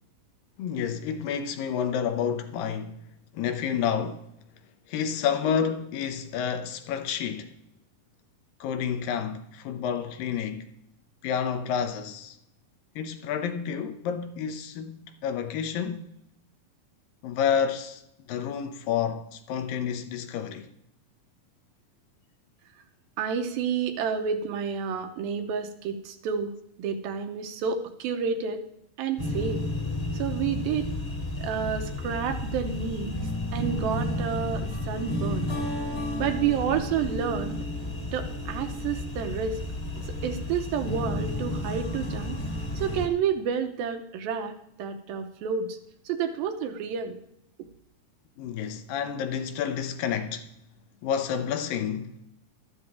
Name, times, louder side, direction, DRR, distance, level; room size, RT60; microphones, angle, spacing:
voice 1, 0.6-3.1 3.3-4.3 4.9-7.5 8.6-10.7 11.2-12.4 13.0-16.1 17.2-18.0 18.3-20.7 48.4-50.5 51.0-52.2, left 7 dB, 80° left, 2.5 m, -29 dB
voice 2, 23.2-28.6 29.0-29.6 30.1-30.9 31.4-33.2 33.5-35.5 36.1-37.6 38.1-39.6 40.0-42.4 42.8-45.8 46.1-47.2, right 7 dB, 90° right, 2.8 m, -30 dB
sound 1, 29.2-43.1, left 1 dB, 20° left, 1.4 m, -32 dB
12.5 x 12.5 x 3.6 m
omnidirectional pair, 4.1 m